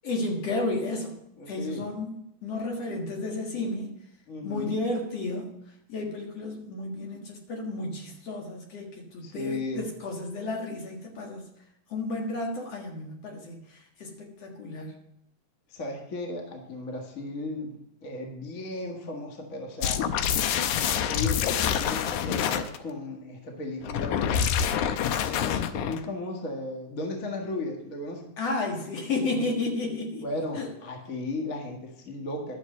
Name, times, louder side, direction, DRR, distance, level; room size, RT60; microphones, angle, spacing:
voice 1, 0.0-1.2 1.5-2.2 2.4-3.9 4.4-5.5 5.9-11.5 11.9-15.0 28.4-30.3 30.6-30.7, left 2 dB, 60° left, 1 dB, 2.6 m, -32 dB
voice 2, 1.4-1.9 4.3-4.8 9.2-9.9 15.7-17.7 18.0-20.0 20.8-24.5 25.7-28.3 30.2-32.6, left 2 dB, 35° left, 1 dB, 1.6 m, -35 dB
sound 1, 19.8-22.8 23.8-26.1, left 8 dB, 90° left, 2.2 m, -26 dB
11.5 x 6.5 x 6.6 m, 0.79 s
omnidirectional pair, 3.4 m